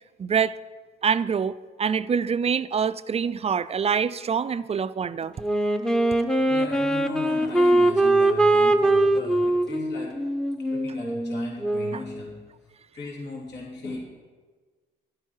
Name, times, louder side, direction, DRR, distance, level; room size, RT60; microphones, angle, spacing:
voice 1, 0.2-0.6 1.0-5.3, right 6 dB, 30° right, 15 dB, 0.4 m, -25 dB
Wind instrument woodwind instrument, 5.4-12.1, right 1 dB, 5° left, 0.9 m, -22 dB
voice 2, 6.5-10.2 10.7-12.4 12.9-14.0, left 2 dB, 60° left, -3 dB, 3.0 m, -37 dB
12.0 x 11.0 x 4.7 m, 1.4 s
cardioid pair, 90°, 20 cm